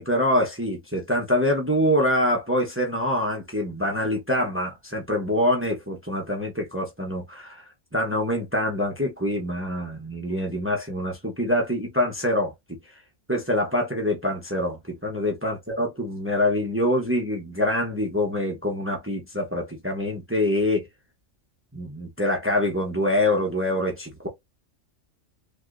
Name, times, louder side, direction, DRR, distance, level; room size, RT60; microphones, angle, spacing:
voice 1, 0.0-12.5 13.3-20.9 21.7-24.3, left 1 dB, 10° right, 0.8 m, -25 dB
3.2 x 2.8 x 2.5 m
omnidirectional pair, 1.2 m